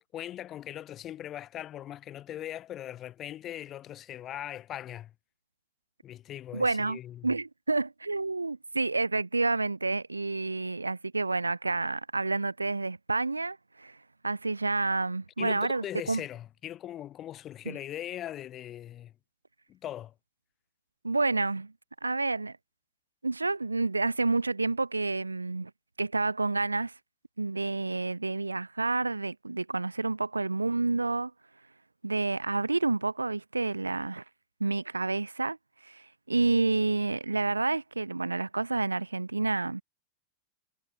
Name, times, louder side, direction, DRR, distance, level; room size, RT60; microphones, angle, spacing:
voice 1, 0.1-5.1 6.0-7.3 15.4-19.1 19.7-20.1, left 12 dB, 30° left, 4.5 m, -40 dB
voice 2, 6.5-14.0 14.2-16.2 17.7-17.8 21.0-21.7 22.0-22.6 23.2-25.7 26.0-26.9 27.4-31.3 32.0-34.2 34.6-35.6 35.8-39.8, right 3 dB, 80° right, 1.8 m, -29 dB
figure-of-eight pair, 90°, 0 cm